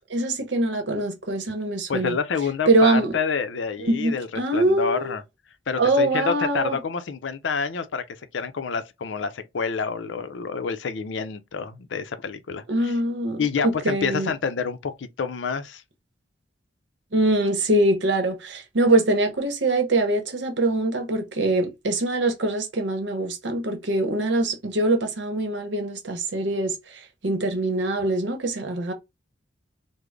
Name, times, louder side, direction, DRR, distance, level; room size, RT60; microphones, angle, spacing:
voice 1, 0.1-2.2 2.7-3.1 3.8-5.1 5.8-6.8 12.7-14.3 17.1-28.9, right 2 dB, 70° right, 0.9 m, -23 dB
voice 2, 1.9-5.2 5.7-8.0 8.3-13.0 13.4-15.8, left 5 dB, 70° left, 0.5 m, -28 dB
3.7 x 2.0 x 3.2 m
head